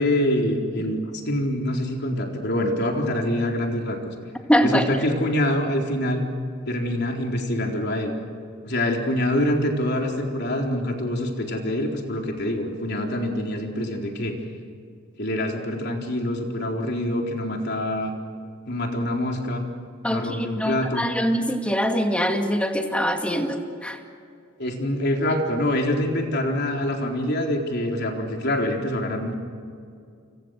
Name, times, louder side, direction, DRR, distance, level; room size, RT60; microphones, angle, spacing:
voice 1, 0.0-4.1 4.6-6.2 6.7-8.1 8.7-14.3 15.2-18.1 18.7-19.6 20.1-21.0 24.6-29.3, left 1 dB, 55° left, 1 dB, 4.1 m, -25 dB
voice 2, 4.5-4.9 20.0-24.0, equal, 5° left, 4 dB, 2.3 m, -23 dB
30.0 x 26.0 x 6.6 m, 2.3 s
head